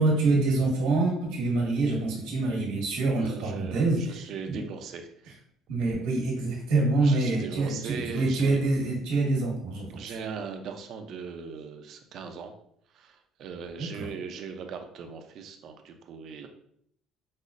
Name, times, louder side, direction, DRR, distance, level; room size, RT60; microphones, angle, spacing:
voice 1, 0.0-4.6 5.7-10.0 13.8-14.1, right 3 dB, 90° right, -2 dB, 1.3 m, -26 dB
voice 2, 3.2-5.4 7.0-8.6 9.9-12.5 12.9-16.5, right 6 dB, 60° right, 6 dB, 0.5 m, -39 dB
5.3 x 2.0 x 2.5 m, 0.69 s
cardioid pair, 105°, 0 cm